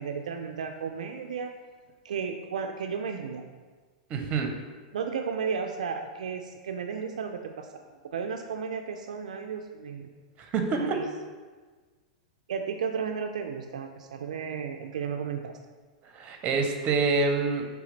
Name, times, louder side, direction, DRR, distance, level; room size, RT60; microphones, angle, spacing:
voice 1, 0.0-1.5 2.0-3.4 4.9-10.1 10.8-11.0 12.5-15.5, right 6 dB, 80° right, 5 dB, 0.3 m, -34 dB
voice 2, 4.1-4.6 10.4-11.0 16.1-17.7, right 4 dB, 35° right, 4 dB, 0.7 m, -26 dB
4.8 x 3.4 x 3.2 m, 1.4 s
hypercardioid pair, 110°, 4 cm